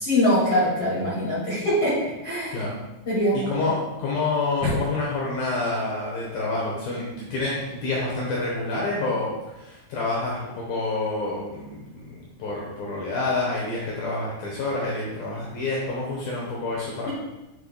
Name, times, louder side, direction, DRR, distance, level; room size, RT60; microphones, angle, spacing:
voice 1, 0.0-1.9 2.2-2.6 3.1-3.5 4.6-4.7, left 1 dB, 40° left, -9 dB, 2.1 m, -22 dB
voice 2, 3.3-17.1, left 2 dB, 85° left, -4 dB, 2.0 m, -28 dB
9.1 x 6.8 x 2.3 m, 1.0 s
omnidirectional pair, 5.9 m